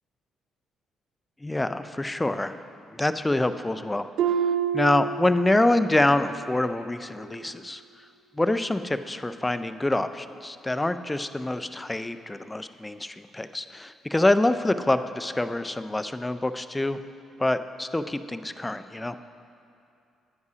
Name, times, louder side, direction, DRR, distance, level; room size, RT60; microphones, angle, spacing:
voice 1, 1.4-2.6 2.9-7.8 8.3-17.0 17.4-19.2, left 1 dB, 15° left, 11 dB, 0.3 m, -26 dB
Harp, 4.2-5.9 6.3-6.7 7.3-7.4, right 7 dB, 75° right, 0.5 m, -28 dB
9.6 x 9.4 x 2.8 m, 2.5 s
cardioid pair, 90°, 0 cm